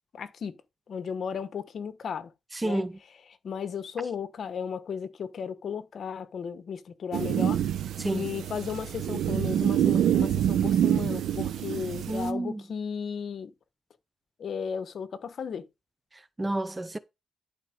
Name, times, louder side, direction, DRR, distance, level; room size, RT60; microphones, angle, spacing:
voice 1, 0.1-0.5 0.9-2.3 2.6-2.8 3.4-7.6 8.0-13.5 14.4-15.6, left 7 dB, 50° left, 1.1 m, -35 dB
voice 2, 2.5-3.0 8.0-8.3 12.1-12.6 16.1-17.0, right 2 dB, 15° right, 0.6 m, -30 dB
sound 1, 7.1-12.3, right 10 dB, 80° right, 0.9 m, -26 dB
11.5 x 4.4 x 5.1 m
cardioid pair, 145°, 0 cm